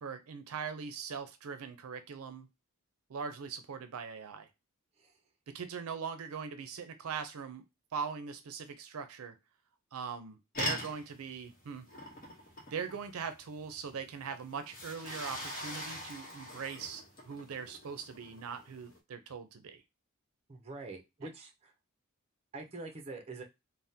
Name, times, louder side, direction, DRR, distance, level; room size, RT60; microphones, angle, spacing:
voice 1, 0.0-2.5 3.1-4.5 5.5-7.6 7.9-9.4 9.9-11.9 12.7-19.8, right 6 dB, 80° right, 9 dB, 0.5 m, -41 dB
sound 1, 10.5-19.0, left 1 dB, 40° left, 0.9 m, -43 dB
voice 2, 20.5-21.7 22.5-23.4, right 3 dB, 30° right, 2 dB, 0.5 m, -45 dB
3.4 x 2.1 x 2.7 m, 0.23 s
head